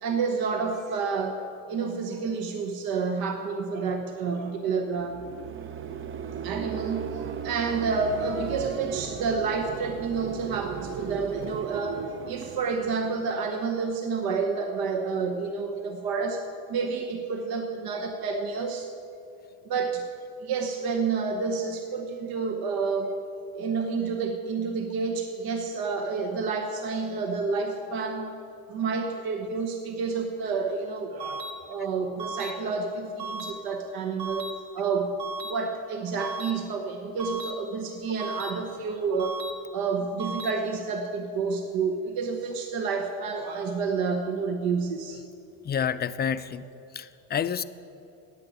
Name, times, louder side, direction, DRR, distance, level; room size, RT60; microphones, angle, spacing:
voice 1, 0.0-5.2 5.6-5.7 6.1-16.4 16.7-18.9 19.6-20.1 20.4-23.2 23.6-28.3 28.7-39.4 39.7-45.2, right 4 dB, 60° right, 5 dB, 1.1 m, -29 dB
sound 1, 4.9-14.0, right 8 dB, 30° right, 0.5 m, -37 dB
sound 2, 31.2-31.5 32.2-32.5 33.2-33.5 34.2-34.5 35.2-35.5 36.2-36.5 37.2-37.5 38.2-38.5 39.2-39.5 40.2-40.5, right 3 dB, 80° right, 1.5 m, -35 dB
voice 2, 45.6-46.6 46.9-47.6, left 8 dB, 25° left, 12 dB, 0.5 m, -29 dB
10.5 x 8.6 x 9.1 m, 2.7 s
supercardioid pair, 90°, 40 cm